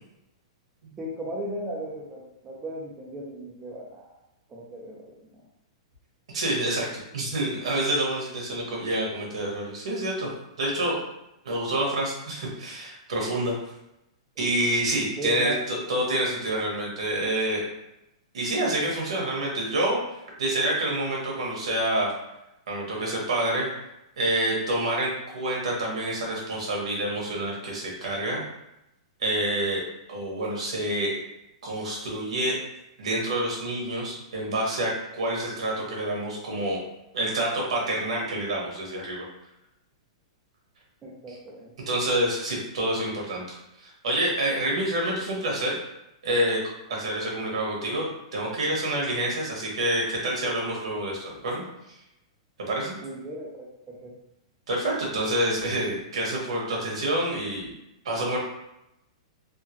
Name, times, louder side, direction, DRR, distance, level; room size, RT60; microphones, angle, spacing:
voice 1, 1.0-4.2 4.5-5.2 15.2-15.6 41.0-41.7 53.0-54.2, right 1 dB, 10° right, -3 dB, 0.4 m, -36 dB
voice 2, 6.3-10.3 10.6-11.0 11.4-13.5 14.4-17.6 18.3-20.0 20.4-22.1 22.7-23.7 24.2-28.4 29.2-29.8 30.1-31.1 31.6-32.6 33.0-36.8 37.1-39.2 41.9-45.8 46.2-46.6 46.9-51.6 52.7-52.9 54.7-57.7 58.0-58.4, right 1 dB, 80° right, -2 dB, 1.4 m, -27 dB
3.6 x 2.1 x 2.9 m, 0.87 s
supercardioid pair, 175°, 3 cm